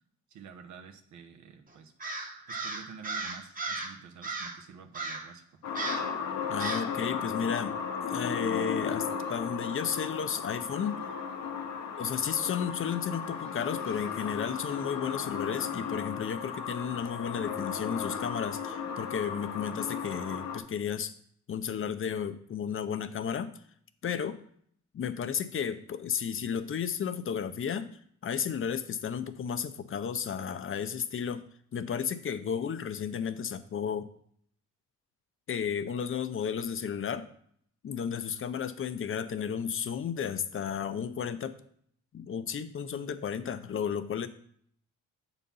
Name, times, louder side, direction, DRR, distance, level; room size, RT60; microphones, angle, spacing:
voice 1, 0.3-1.9 2.5-5.6, right 6 dB, 70° right, 6 dB, 1.0 m, -49 dB
Crow, 2.0-3.9 4.2-4.6 4.9-5.3 5.7-6.1 6.6-6.9, right 3 dB, 30° right, 1.2 m, -36 dB
sound 1, 5.6-20.6, left 6 dB, 70° left, 1.0 m, -35 dB
voice 2, 6.5-7.7 8.1-11.0 12.0-21.1 21.5-23.5 24.0-24.4 24.9-27.9 28.2-31.4 31.7-34.1 35.5-37.3 37.8-41.5 42.1-44.3, left 7 dB, 45° left, 11 dB, 0.7 m, -33 dB
7.3 x 4.0 x 5.5 m, 0.63 s
cardioid pair, 90°, 30 cm